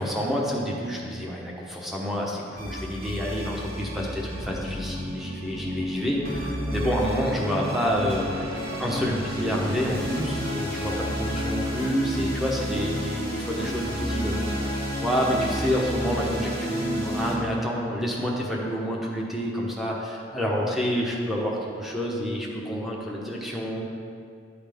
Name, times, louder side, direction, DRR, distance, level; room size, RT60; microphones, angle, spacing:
voice 1, 0.0-23.9, equal, ahead, -3 dB, 0.9 m, -28 dB
sound 1, 2.6-17.3, equal, 55° right, 1.8 m, -31 dB
12.0 x 4.0 x 3.5 m, 2.3 s
head